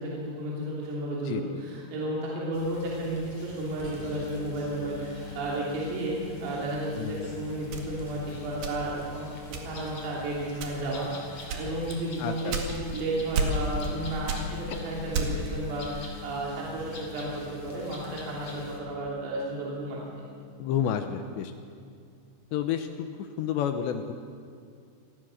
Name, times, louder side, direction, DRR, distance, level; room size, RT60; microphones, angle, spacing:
voice 1, 0.0-9.3 9.6-20.0, right 1 dB, 80° right, -5 dB, 5.8 m, -33 dB
sound 1, 2.5-18.8, left 2 dB, 35° left, 3.7 m, -46 dB
sound 2, 3.8-21.3, left 9 dB, 35° right, 2.1 m, -48 dB
sound 3, 7.7-9.1 9.5-10.0 10.5-11.0 11.5-13.0 13.3-14.0 14.2-15.6, right 4 dB, 55° right, 3.7 m, -31 dB
voice 2, 12.2-12.6 20.6-21.5 22.5-24.1, left 9 dB, 75° left, 7 dB, 2.7 m, -30 dB
27.5 x 19.0 x 6.4 m, 2.3 s
omnidirectional pair, 5.9 m